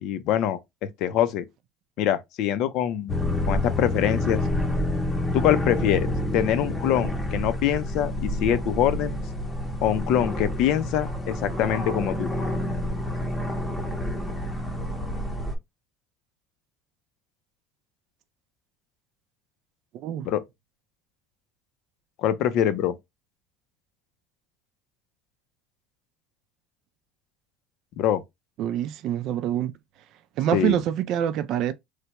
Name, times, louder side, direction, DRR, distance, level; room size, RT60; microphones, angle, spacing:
voice 1, 0.0-1.4 2.0-3.1 3.5-4.4 5.3-9.2 9.8-12.3 20.2-20.4 22.2-23.0 28.0-28.2 30.5-30.8, left 10 dB, 65° left, 0.5 m, -24 dB
sound 1, 3.1-15.6, left 1 dB, 10° left, 0.7 m, -28 dB
voice 2, 19.9-20.3 28.6-29.7 30.4-31.7, right 11 dB, 55° right, 0.4 m, -25 dB
3.2 x 2.2 x 2.9 m
supercardioid pair, 125°, 0 cm